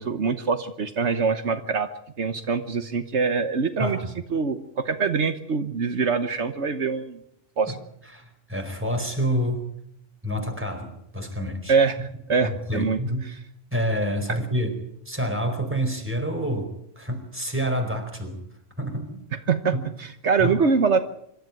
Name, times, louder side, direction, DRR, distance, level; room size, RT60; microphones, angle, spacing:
voice 1, 0.0-1.9 2.2-4.0 4.3-7.2 7.6-7.8 11.7-13.0 19.5-21.0, right 5 dB, 75° right, 9 dB, 1.4 m, -24 dB
voice 2, 8.1-9.6 10.2-12.1 12.4-13.4 13.7-14.8 15.0-18.4 18.8-19.2 19.7-19.8 20.4-20.6, equal, 10° right, 4 dB, 4.4 m, -28 dB
26.0 x 13.5 x 9.3 m, 0.76 s
omnidirectional pair, 1.2 m